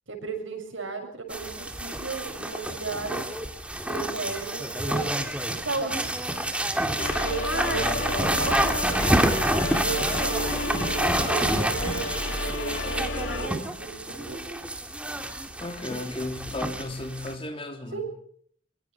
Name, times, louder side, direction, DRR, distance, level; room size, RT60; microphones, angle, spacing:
voice 1, 0.1-3.3 3.7-5.1 5.5-6.1 7.1-7.8 8.2-9.3 9.7-14.6 17.9-18.1, right 4 dB, 75° right, 3 dB, 7.0 m, -35 dB
sound 1, 1.3-17.3, right 1 dB, 5° right, 2.3 m, -28 dB
sound 2, 7.0-13.5, left 2 dB, 75° left, 2.6 m, -32 dB
voice 2, 7.6-8.1 15.6-18.0, left 1 dB, 30° left, 5 dB, 3.3 m, -34 dB
24.5 x 24.5 x 4.6 m, 0.62 s
head